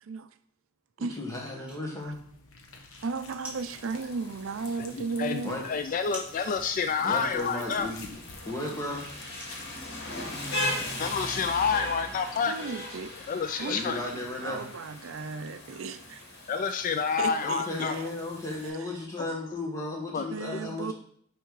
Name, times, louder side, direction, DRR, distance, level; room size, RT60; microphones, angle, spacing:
voice 1, 1.0-2.2 5.4-5.6 7.0-8.1 8.5-9.2 13.6-14.7 17.4-20.9, left 2 dB, 15° left, -2 dB, 1.7 m, -35 dB
sound 1, 1.3-10.2, right 1 dB, 5° right, 2.5 m, -49 dB
sound 2, 2.0-11.1, left 3 dB, 80° left, 1.2 m, -51 dB
voice 2, 3.0-5.6 12.3-13.1 13.6-16.2 17.2-18.1 18.6-18.9 20.2-20.9, right 4 dB, 70° right, 11 dB, 0.4 m, -35 dB
Rain, 3.5-18.7, left 1 dB, 55° left, 2.1 m, -39 dB
voice 3, 5.2-7.9 11.0-12.5 13.3-14.0 16.5-17.9 19.2-19.3 20.1-20.6, left 5 dB, 40° left, 9 dB, 0.3 m, -29 dB
9.0 x 3.4 x 4.7 m, 0.63 s
head